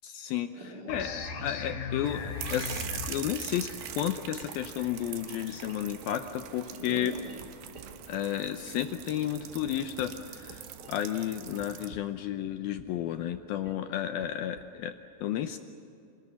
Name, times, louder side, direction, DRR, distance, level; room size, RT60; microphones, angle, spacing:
voice 1, 0.0-7.2 8.1-14.9 15.2-15.6, left 11 dB, 80° left, 8 dB, 2.3 m, -32 dB
sound 1, 0.6-1.3 1.6-3.3 3.6-4.7 5.3-6.3 6.7-7.8 8.1-8.2 8.5-8.9 9.6-9.7 10.0-10.9 11.2-11.3 11.6-12.0 12.4-13.0 13.3-13.4 13.6-13.7 14.1-14.6, right 4 dB, 40° right, 1.5 m, -47 dB
sound 2, 0.9-6.2, left 5 dB, 50° left, 5.0 m, -40 dB
sound 3, 2.0-11.9, right 10 dB, 70° right, 3.1 m, -43 dB
27.5 x 20.0 x 9.9 m, 2.6 s
omnidirectional pair, 5.1 m